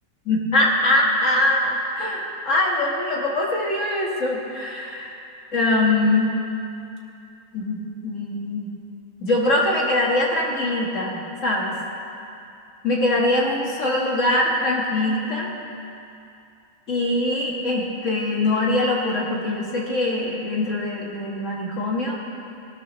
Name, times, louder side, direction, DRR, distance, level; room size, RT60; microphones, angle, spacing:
voice 1, 0.3-5.1 5.5-6.3 7.5-8.7 9.2-11.8 12.8-15.5 16.9-22.2, left 1 dB, 55° left, -3 dB, 2.0 m, -22 dB
21.0 x 13.0 x 3.1 m, 2.6 s
omnidirectional pair, 1.6 m